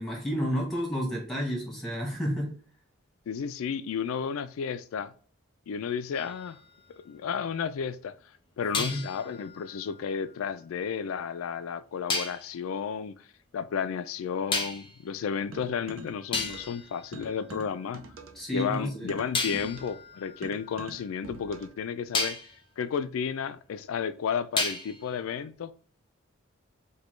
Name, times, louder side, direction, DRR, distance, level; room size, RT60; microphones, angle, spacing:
voice 1, 0.0-2.6 8.7-9.0 18.3-19.1, equal, ahead, 1.2 m, -31 dB
voice 2, 3.3-5.1 5.7-6.6 7.1-8.1 8.6-13.2 13.5-18.0 18.5-22.4 22.8-25.7, left 7 dB, 80° left, 0.3 m, -32 dB
sound 1, 6.1-7.6 8.7-10.9 12.1-12.5 14.5-15.1 15.8-15.9 16.3-18.0 19.3-21.5 22.1-22.6 24.6-25.1, left 3 dB, 25° left, 0.5 m, -35 dB
sound 2, 15.5-16.8 17.1-21.8, right 3 dB, 75° right, 0.6 m, -45 dB
5.0 x 2.2 x 3.1 m
head